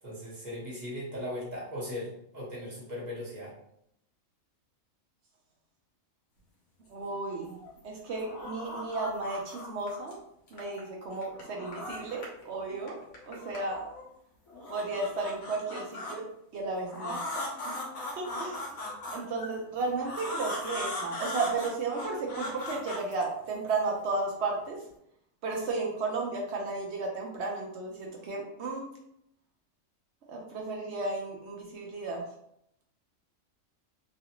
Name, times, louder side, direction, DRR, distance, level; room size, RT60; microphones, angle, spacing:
voice 1, 0.0-3.5, left 1 dB, 35° right, -6 dB, 1.1 m, -38 dB
voice 2, 6.9-10.2 10.5-13.0 13.3-13.9 14.7-16.2 16.5-18.7 19.1-24.8 25.4-28.9 30.3-32.2, right 3 dB, 60° right, 0 dB, 0.8 m, -34 dB
sound 1, 7.2-7.8 8.1-10.1 10.5-12.4 12.7-14.0 14.5-16.2 16.9-19.5 20.0-23.8, left 2 dB, 75° left, 1.3 m, -39 dB
3.2 x 2.5 x 2.8 m, 0.74 s
omnidirectional pair, 1.4 m